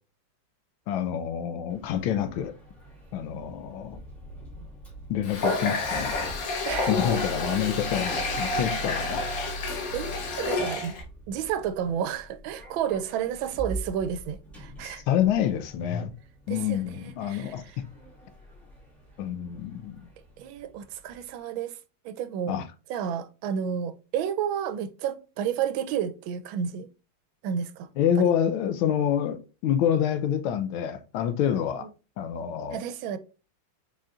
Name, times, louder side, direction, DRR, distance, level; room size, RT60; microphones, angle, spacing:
voice 1, 0.9-2.5 3.1-4.0 5.1-6.2 6.9-9.5 14.8-16.1 16.5-17.8 19.2-20.1 22.4-22.6 28.0-31.9 32.2-32.8, left 9 dB, 85° left, 1.4 m, -27 dB
Sliding door, 1.7-21.3, right 2 dB, ahead, 2.4 m, -45 dB
Water tap faucet, 5.2-11.0, left 3 dB, 55° left, 1.1 m, -29 dB
sound 1, 6.9-10.5, equal, 50° right, 1.5 m, -39 dB
voice 2, 9.9-11.0 11.3-15.0 16.5-17.6 20.4-21.8 22.0-22.6 22.9-26.9 27.4-27.9 28.2-28.3 32.7-33.2, right 8 dB, 80° right, 1.3 m, -31 dB
5.0 x 4.2 x 2.4 m
omnidirectional pair, 2.2 m